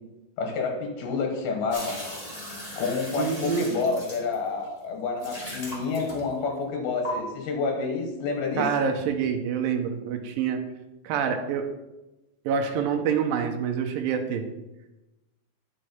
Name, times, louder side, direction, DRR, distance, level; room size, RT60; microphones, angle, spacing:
voice 1, 0.4-2.0 2.8-8.7, left 4 dB, 85° left, 3 dB, 3.3 m, -29 dB
sound 1, 1.7-4.7 5.2-6.5 7.0-7.1, left 1 dB, 15° left, 1.3 m, -38 dB
voice 2, 3.2-3.7 8.6-10.6 11.0-11.7 12.5-14.5, right 7 dB, 80° right, 5 dB, 2.4 m, -26 dB
10.5 x 6.4 x 4.3 m, 1.0 s
omnidirectional pair, 4.3 m